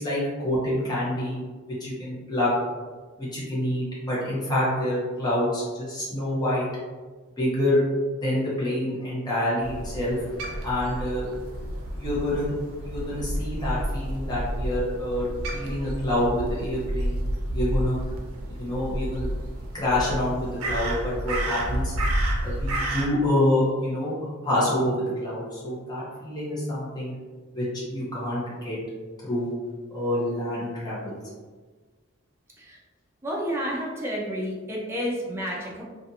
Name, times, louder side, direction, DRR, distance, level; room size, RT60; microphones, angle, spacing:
voice 1, 0.0-1.5 1.8-2.5 3.2-6.7 7.4-7.8 8.2-10.2 10.6-11.3 11.9-12.5 12.8-17.2 17.5-18.0 18.5-19.3 19.7-21.9 22.4-24.1 24.4-27.1 27.5-28.8 29.2-29.5 29.9-31.2, left 1 dB, 20° left, -8 dB, 0.7 m, -27 dB
Crow, 9.6-23.1, right 1 dB, 90° right, 0.5 m, -30 dB
voice 2, 33.2-35.8, equal, 10° right, -4 dB, 0.4 m, -30 dB
2.7 x 2.4 x 2.4 m, 1.4 s
head